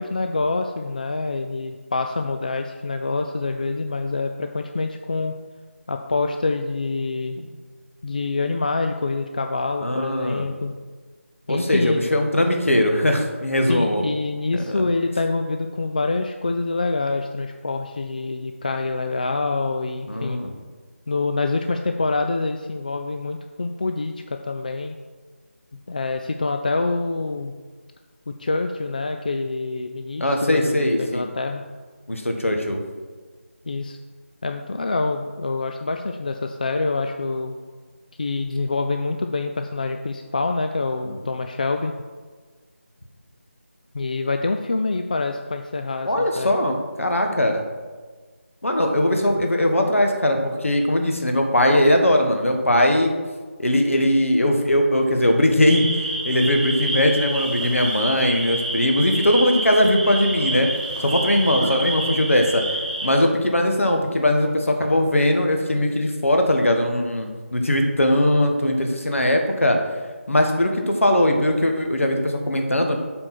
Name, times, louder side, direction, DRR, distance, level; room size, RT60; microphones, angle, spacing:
voice 1, 0.0-5.3 5.9-7.4 8.0-10.7 11.5-12.0 13.7-20.4 21.1-25.0 25.9-27.5 28.3-31.6 33.7-34.0 34.4-37.6 38.2-41.9 43.9-46.1 46.4-46.5 49.3-49.4, left 3 dB, 35° left, 5 dB, 0.3 m, -26 dB
voice 2, 9.8-10.5 11.5-14.0 20.1-20.5 30.2-31.2 32.1-32.8 41.0-41.2 46.1-47.6 48.6-53.1 53.6-55.9 56.2-60.7 61.0-62.6 63.0-69.8 70.3-73.0, left 1 dB, 70° left, 3 dB, 1.4 m, -20 dB
sound 1, 55.7-63.1, right 2 dB, 10° right, 1.1 m, -28 dB
7.6 x 4.6 x 6.0 m, 1.4 s
figure-of-eight pair, 160°, 7 cm